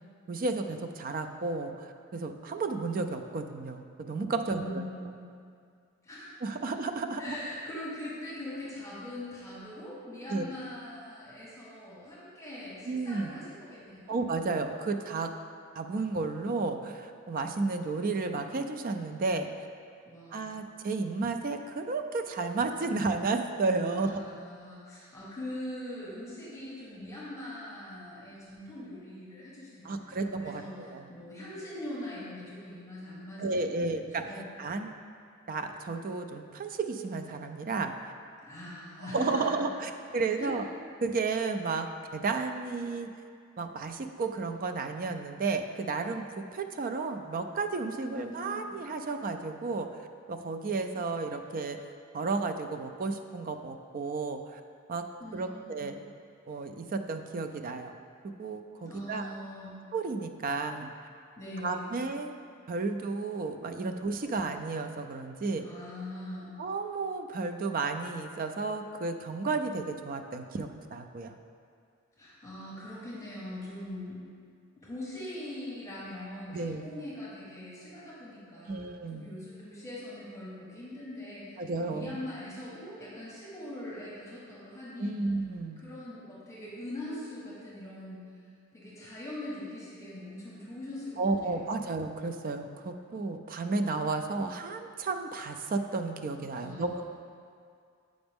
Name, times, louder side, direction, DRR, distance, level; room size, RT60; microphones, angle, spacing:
voice 1, 0.3-4.8 6.4-7.4 10.3-10.4 12.9-13.3 14.1-15.3 15.8-19.5 20.3-24.2 29.8-31.1 33.4-34.3 34.6-34.9 35.5-38.1 39.1-40.7 41.0-43.1 43.6-50.0 50.3-51.8 52.1-54.6 54.9-55.0 55.3-56.0 56.5-57.9 58.2-59.3 59.9-60.9 61.6-62.3 62.7-65.7 66.6-71.3 76.5-77.0 78.7-79.3 81.6-82.2 85.0-85.8 91.2-97.0, right 3 dB, 40° right, 6 dB, 0.4 m, -32 dB
voice 2, 4.5-5.2 6.0-6.4 7.2-14.2 20.0-20.5 23.9-34.5 38.4-39.6 40.4-40.6 48.0-48.8 55.2-55.9 58.8-59.7 61.4-62.0 65.6-66.6 72.2-74.2 74.8-78.8 79.1-85.2 85.8-88.3 88.7-91.8 96.6-97.0, left 1 dB, 15° left, -8 dB, 1.3 m, -42 dB
7.9 x 5.1 x 3.5 m, 2.2 s
head